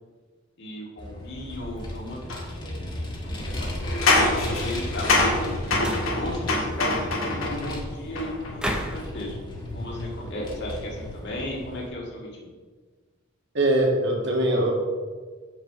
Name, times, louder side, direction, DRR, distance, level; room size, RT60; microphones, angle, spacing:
voice 1, 0.6-2.3 2.5-3.8 4.4-5.5 6.0-9.4 9.7-12.3, left 1 dB, 55° left, -2 dB, 1.9 m, -35 dB
Vehicle, 1.0-11.9, left 1 dB, 20° left, 1.3 m, -35 dB
sound 1, 2.3-2.4 3.8-7.7 8.2-8.9, left 2 dB, 90° left, 1.9 m, -25 dB
sound 2, 5.0-5.5 5.8-6.2 8.6-9.1, equal, 5° right, 0.7 m, -32 dB
voice 2, 13.5-14.7, right 1 dB, 60° right, 0 dB, 1.8 m, -22 dB
7.5 x 6.1 x 4.9 m, 1.5 s
head